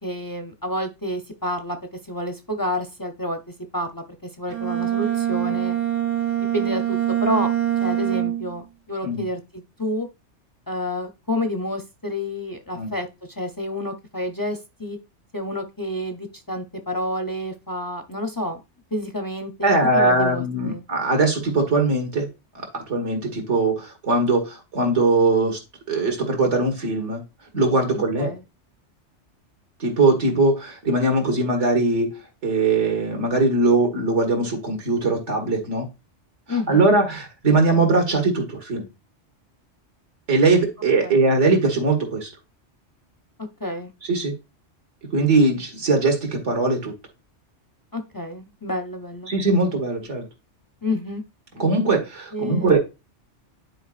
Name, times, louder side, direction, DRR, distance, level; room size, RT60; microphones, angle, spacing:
voice 1, 0.0-1.8 2.1-3.4 3.7-5.8 6.5-7.5 7.8-10.1 10.7-13.1 13.4-15.0 15.3-18.6 18.9-20.8 27.9-28.4 36.5-36.9 41.0-41.2 43.6-43.9 47.9-49.3 50.8-51.2 52.3-52.8, left 1 dB, 25° left, 6 dB, 0.5 m, -29 dB
Bowed string instrument, 4.5-8.6, right 12 dB, 45° right, 0.7 m, -24 dB
voice 2, 19.6-22.3 22.5-25.6 25.9-27.2 27.5-28.3 29.8-32.1 32.4-35.9 36.7-38.9 40.3-42.3 44.1-44.3 45.1-46.9 49.3-50.3 51.6-52.8, right 3 dB, 80° right, 3 dB, 2.1 m, -20 dB
10.0 x 4.8 x 2.4 m, 0.26 s
omnidirectional pair, 1.2 m